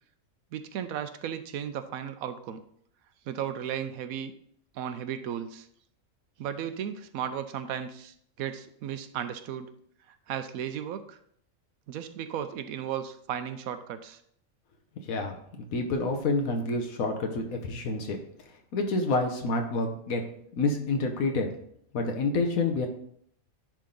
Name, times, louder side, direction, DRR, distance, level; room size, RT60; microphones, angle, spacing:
voice 1, 0.5-2.6 3.3-4.3 4.7-5.7 6.4-9.7 10.3-11.2 11.9-14.2, right 9 dB, 85° right, 10 dB, 1.1 m, -35 dB
voice 2, 15.1-18.2 18.7-20.2 20.5-21.5 21.9-22.9, left 3 dB, 80° left, 3 dB, 1.3 m, -28 dB
10.5 x 3.7 x 3.8 m, 0.66 s
omnidirectional pair, 1.5 m